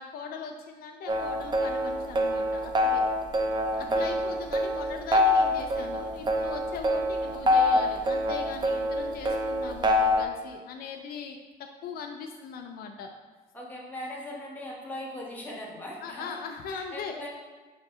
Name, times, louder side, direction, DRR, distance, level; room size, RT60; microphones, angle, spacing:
voice 1, 0.0-3.0 3.7-11.4 11.8-13.1 16.0-17.1, left 5 dB, 65° left, 3 dB, 0.4 m, -39 dB
sound 1, 1.1-10.2, left 1 dB, 25° right, 0.5 m, -25 dB
voice 2, 3.8-4.2 13.5-16.4 16.7-17.3, left 1 dB, 10° left, -2 dB, 1.0 m, -40 dB
5.2 x 2.7 x 3.6 m, 1.3 s
cardioid pair, 110°, 17 cm